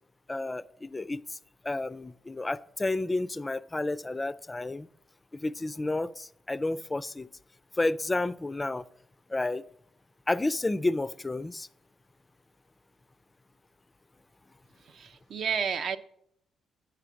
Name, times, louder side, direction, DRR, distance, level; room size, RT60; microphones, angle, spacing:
voice 1, 0.3-1.4 1.6-4.9 5.4-7.3 7.8-8.8 9.3-9.6 10.3-11.7, left 2 dB, 20° left, 0.3 m, -31 dB
voice 2, 14.9-16.0, right 6 dB, 60° right, 0.6 m, -31 dB
9.1 x 5.0 x 5.7 m
cardioid pair, 90°, 0 cm